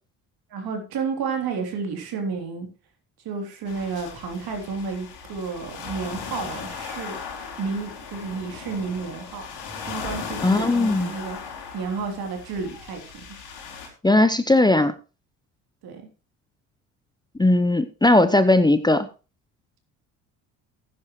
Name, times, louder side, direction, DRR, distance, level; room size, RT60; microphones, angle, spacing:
voice 1, 0.5-2.7 3.3-7.2 7.6-9.5 9.8-11.4 11.7-13.0 13.3-13.4 15.8-16.0, right 5 dB, 65° right, 4 dB, 3.3 m, -31 dB
sound 1, 3.7-13.9, left 6 dB, 75° left, 4.5 m, -37 dB
voice 2, 10.4-11.1 14.0-14.9 17.4-19.1, left 2 dB, 10° left, 11 dB, 0.8 m, -18 dB
15.0 x 10.5 x 3.1 m, 0.33 s
hypercardioid pair, 60°, 40 cm